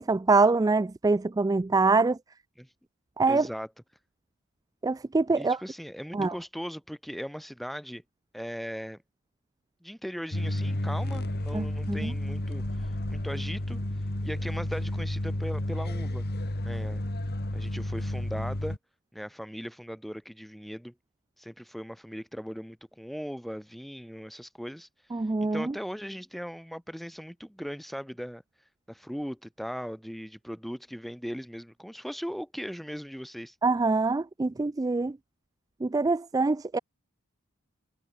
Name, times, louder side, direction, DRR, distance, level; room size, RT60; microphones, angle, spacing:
voice 1, 0.0-2.2 3.2-3.5 4.8-5.6 6.1-6.3 11.5-12.1 25.1-25.6 33.6-35.2 35.8-36.8, right 3 dB, 15° right, 0.3 m, -24 dB
voice 2, 3.3-3.7 5.3-8.0 8.3-9.0 9.8-13.8 14.2-16.3 16.6-17.0 17.5-18.8 19.1-20.9 21.4-24.9 25.5-28.4 28.9-33.5, equal, ahead, 3.0 m, -38 dB
sound 1, 10.3-18.8, left 1 dB, 45° left, 2.0 m, -31 dB
head